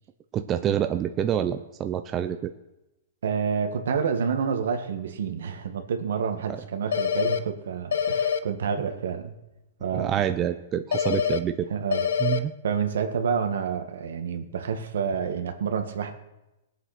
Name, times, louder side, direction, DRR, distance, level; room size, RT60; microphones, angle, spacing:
voice 1, 0.3-2.5 9.9-11.7 12.2-12.5, right 10 dB, 25° right, 8 dB, 0.6 m, -27 dB
voice 2, 3.2-9.4 9.8-10.2 11.7-16.1, right 6 dB, 80° right, 6 dB, 2.0 m, -29 dB
sound 1, 6.9-7.4 7.9-8.4 10.9-11.4 11.9-12.4, left 7 dB, 85° left, 0.8 m, -24 dB
18.5 x 8.1 x 6.1 m, 0.95 s
hypercardioid pair, 145°, 0 cm